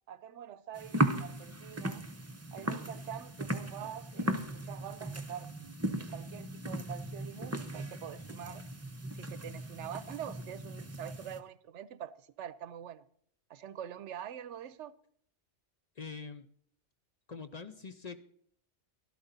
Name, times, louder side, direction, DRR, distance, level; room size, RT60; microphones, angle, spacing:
voice 1, 0.1-2.1 2.5-5.5 6.1-8.6 9.1-13.0 13.5-14.9, right 9 dB, 85° right, 1.0 m, -45 dB
sound 1, 0.7-11.4, right 1 dB, 15° right, 0.8 m, -37 dB
voice 2, 16.0-16.5 17.3-18.2, left 5 dB, 45° left, 0.7 m, -44 dB
13.0 x 12.5 x 4.0 m
omnidirectional pair, 1.2 m